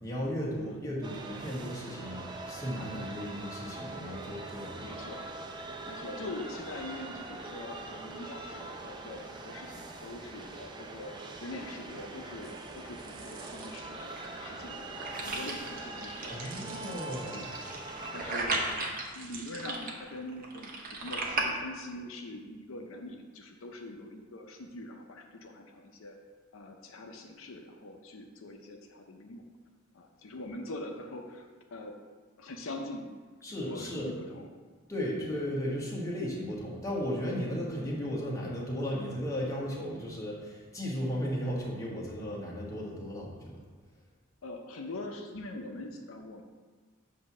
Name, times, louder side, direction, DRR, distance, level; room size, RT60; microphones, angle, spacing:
voice 1, 0.0-2.2 2.5-4.9 16.3-17.5 33.4-34.1 34.9-43.6, equal, 15° left, -4 dB, 1.3 m, -35 dB
sound 1, 1.0-18.5, right 2 dB, 20° right, 0.5 m, -43 dB
voice 2, 4.8-5.3 5.9-14.9 15.2-16.8 17.3-17.5 18.1-18.9 19.1-26.2 26.5-29.4 29.9-31.9 32.4-33.1 33.5-34.5 35.1-35.3 44.4-46.4, left 2 dB, 85° left, 3 dB, 0.6 m, -43 dB
sound 2, 12.4-21.4, right 3 dB, 45° right, 0.8 m, -38 dB
7.5 x 2.8 x 6.0 m, 1.4 s
head